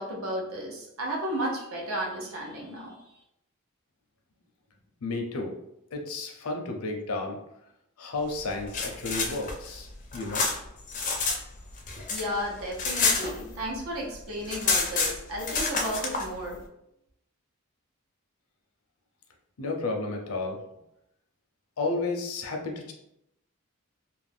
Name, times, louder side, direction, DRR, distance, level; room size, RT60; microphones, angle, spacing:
voice 1, 0.0-2.9 12.1-16.6, equal, 75° right, -2 dB, 0.8 m, -33 dB
voice 2, 5.0-5.6 5.9-7.4 8.0-10.5 19.6-20.6 21.8-22.9, left 3 dB, 85° left, 2 dB, 0.6 m, -32 dB
sound 1, 8.5-11.4 11.7-13.8 14.1-14.2 14.4-16.3, left 4 dB, 35° left, 0.4 m, -28 dB
2.4 x 2.2 x 3.4 m, 0.81 s
head